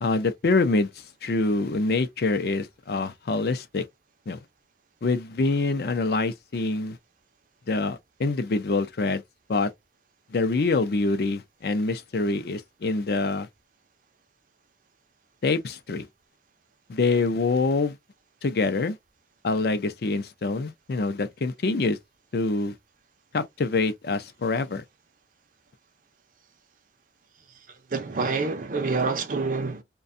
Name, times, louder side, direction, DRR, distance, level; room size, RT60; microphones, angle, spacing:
voice 1, 0.0-3.8 4.3-4.4 5.0-7.0 7.7-9.2 9.5-9.7 10.3-13.5 15.4-16.1 16.9-18.0 18.4-19.0 19.4-22.0 22.3-22.7 23.3-24.8, left 3 dB, 60° left, 0.5 m, -25 dB
voice 2, 27.9-29.8, right 4 dB, 50° right, 0.5 m, -27 dB
2.5 x 2.2 x 2.5 m
head